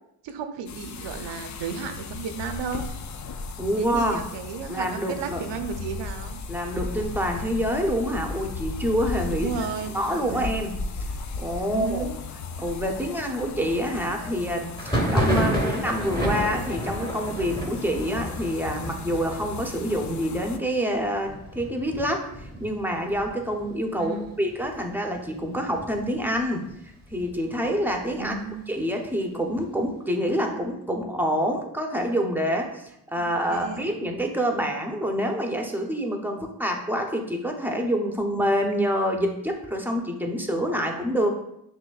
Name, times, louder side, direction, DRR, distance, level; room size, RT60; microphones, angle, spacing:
voice 1, 0.2-2.9 3.8-6.4 9.3-10.6 11.6-12.2 24.0-24.4 28.2-28.6 33.2-34.1, right 5 dB, 75° right, 7 dB, 0.6 m, -34 dB
sound 1, 0.7-20.6, left 4 dB, 45° left, 0.4 m, -36 dB
voice 2, 3.6-4.2 4.7-5.4 6.5-9.5 9.9-10.7 11.4-12.1 12.6-28.4 28.7-41.3, equal, 5° right, 2 dB, 0.7 m, -27 dB
Thunder, 14.7-24.3 24.5-25.2 25.5-26.5 26.9-28.6, equal, 10° left, 1.1 m, -31 dB
5.8 x 2.7 x 2.3 m, 0.78 s
cardioid pair, 70°, 44 cm